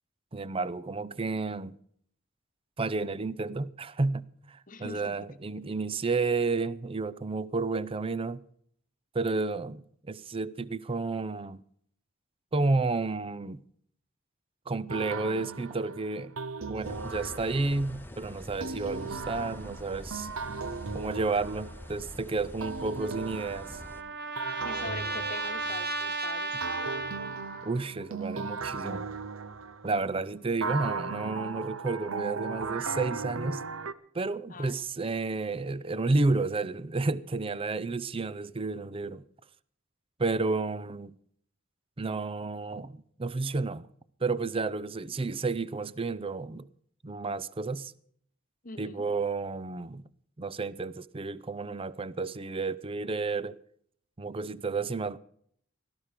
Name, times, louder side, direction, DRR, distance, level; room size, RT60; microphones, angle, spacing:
voice 1, 0.3-1.8 2.8-8.4 9.1-11.6 12.5-13.6 14.7-16.3 16.7-20.3 20.9-23.8 27.6-29.0 29.8-33.6 34.1-39.2 40.2-41.2 42.0-43.9 44.2-46.7 47.0-47.9 48.8-50.0 50.4-53.6 54.2-55.2, right 3 dB, 25° right, 0.5 m, -31 dB
voice 2, 4.7-5.2 6.1-6.2 24.6-27.2 34.5-34.8 48.6-49.0, left 3 dB, 40° left, 1.2 m, -43 dB
sound 1, 14.9-18.0 18.6-22.1 22.6-26.1 26.6-30.1 30.6-33.9, right 4 dB, 75° right, 0.8 m, -37 dB
sound 2, 16.8-24.0, left 1 dB, 10° left, 0.8 m, -45 dB
Trumpet, 23.0-27.8, right 3 dB, 45° right, 1.6 m, -35 dB
17.5 x 13.0 x 5.0 m
head